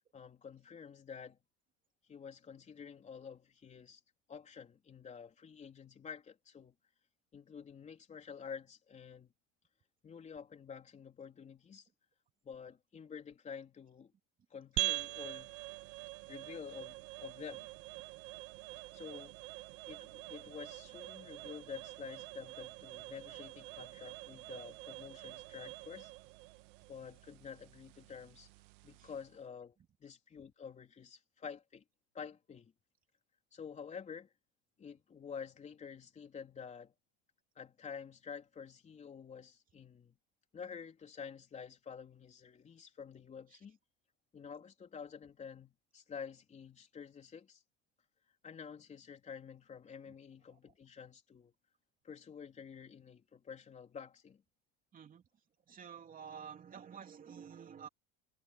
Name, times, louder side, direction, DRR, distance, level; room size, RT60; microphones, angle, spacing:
voice 1, 0.1-1.4 2.1-4.0 4.3-6.8 7.3-9.3 10.0-11.9 12.4-14.1 14.5-15.5 16.3-17.7 18.9-19.3 19.9-26.1 26.9-28.5 28.8-31.8 32.1-32.7 33.5-34.3 34.8-36.9 37.6-40.2 40.5-43.8 44.3-47.6 48.4-51.5 52.0-54.4, left 6 dB, 20° left, 3.9 m, -49 dB
sound 1, 14.8-29.4, right 20 dB, 75° right, 1.8 m, -45 dB
voice 2, 54.9-55.2 55.7-57.9, right 7 dB, 20° right, 3.0 m, -50 dB
cardioid pair, 170°, 37 cm